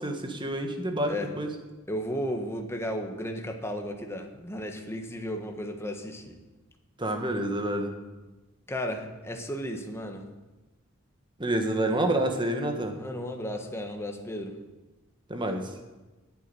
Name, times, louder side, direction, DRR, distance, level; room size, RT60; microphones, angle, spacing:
voice 1, 0.0-1.5 7.0-7.9 11.4-13.0 15.3-15.7, right 1 dB, 25° right, 5 dB, 1.5 m, -28 dB
voice 2, 1.9-6.4 8.7-10.3 13.0-14.5, equal, 10° left, 3 dB, 1.4 m, -34 dB
10.5 x 8.6 x 9.1 m, 1.1 s
head